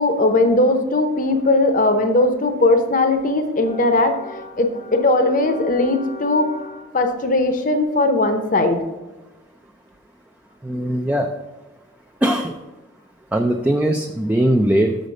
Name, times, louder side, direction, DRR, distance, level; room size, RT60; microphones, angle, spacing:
voice 1, 0.0-8.8, left 2 dB, 40° left, 7 dB, 0.8 m, -19 dB
voice 2, 10.6-11.3 12.2-12.6 13.3-15.0, right 1 dB, 5° right, 2 dB, 0.4 m, -19 dB
6.6 x 6.5 x 5.2 m, 1.1 s
head